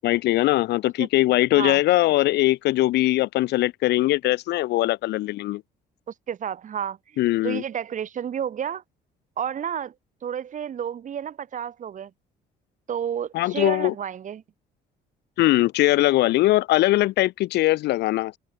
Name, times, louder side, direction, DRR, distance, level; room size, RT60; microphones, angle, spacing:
voice 1, 0.0-5.6 7.2-7.6 13.3-13.9 15.4-18.4, left 17 dB, 80° left, 7.2 m, -21 dB
voice 2, 6.3-8.8 9.4-9.9 10.2-12.1 12.9-14.4, right 8 dB, 50° right, 6.7 m, -31 dB
cardioid pair, 110°, 17 cm